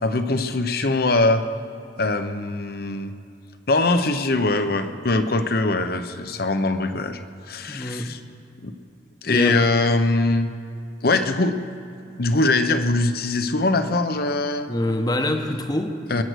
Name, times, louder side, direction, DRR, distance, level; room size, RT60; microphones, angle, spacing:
voice 1, 0.0-1.4 2.0-3.1 3.7-7.2 7.5-8.2 8.6-8.7 9.2-10.5 11.0-11.5 12.2-14.7 16.1-16.2, left 2 dB, 60° left, 9 dB, 0.8 m, -22 dB
voice 2, 7.7-8.2 9.3-9.7 14.7-16.2, left 1 dB, 20° left, 6 dB, 0.9 m, -25 dB
22.0 x 7.9 x 6.4 m, 2.5 s
head